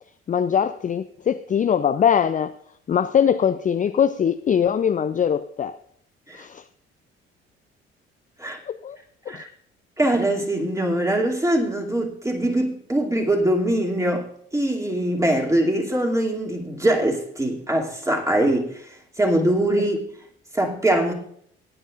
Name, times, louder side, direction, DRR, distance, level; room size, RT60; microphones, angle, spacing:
voice 1, 0.3-2.5 2.9-5.7 6.4-6.6 8.7-9.0 9.3-9.4, left 8 dB, 25° left, 0.5 m, -21 dB
voice 2, 10.0-14.3 14.5-18.9 19.2-20.0 20.5-21.1, right 1 dB, 10° right, 2.6 m, -22 dB
17.5 x 9.9 x 2.5 m
hypercardioid pair, 55°, 31 cm